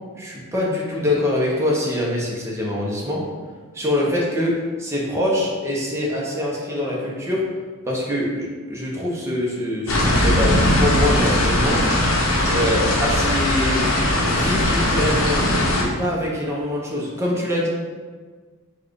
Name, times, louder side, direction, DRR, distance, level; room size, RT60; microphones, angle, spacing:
voice 1, 0.2-3.2 3.7-7.4 7.8-11.8 12.5-13.8 14.3-15.4 15.8-17.7, left 1 dB, 10° right, -4 dB, 0.9 m, -24 dB
sound 1, 9.9-15.8, left 1 dB, 65° left, 0.9 m, -19 dB
4.4 x 2.4 x 4.7 m, 1.5 s
head